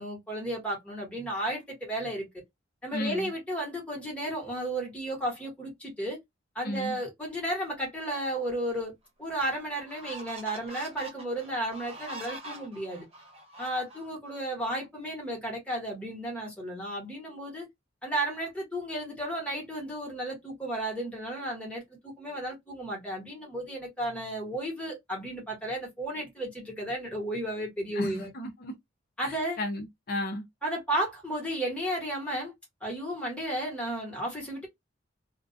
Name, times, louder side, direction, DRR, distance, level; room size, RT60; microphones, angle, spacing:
voice 1, 0.0-2.3 2.8-6.2 6.5-8.9 9.2-13.0 13.6-17.7 18.0-28.3 29.2-29.6 30.6-32.5 32.8-34.7, right 1 dB, 5° left, 1.1 m, -33 dB
voice 2, 2.9-3.3 6.6-7.0 27.9-28.7 29.2-30.4, left 1 dB, 55° left, 0.6 m, -34 dB
sound 1, 8.7-8.8 9.4-14.4, right 1 dB, 35° right, 0.8 m, -44 dB
2.3 x 2.2 x 2.5 m
head